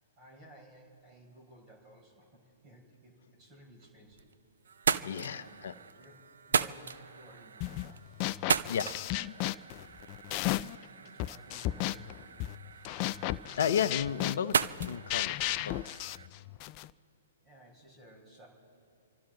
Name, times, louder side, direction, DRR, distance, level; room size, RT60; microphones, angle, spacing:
voice 1, 0.2-4.3 5.1-6.2 6.5-8.0 10.3-12.4 17.4-18.5, right 1 dB, 30° right, 0 dB, 4.9 m, -56 dB
sound 1, 3.8-4.3 4.6-16.3, right 6 dB, 75° right, 0.5 m, -36 dB
voice 2, 5.0-5.7 8.7-8.9 13.6-15.8, left 8 dB, 65° left, 12 dB, 0.8 m, -33 dB
sound 2, 7.6-7.9 8.2-10.8 11.2-16.9, left 16 dB, 35° left, 0.4 m, -34 dB
28.0 x 12.5 x 3.9 m, 2.6 s
hypercardioid pair, 125°, 0 cm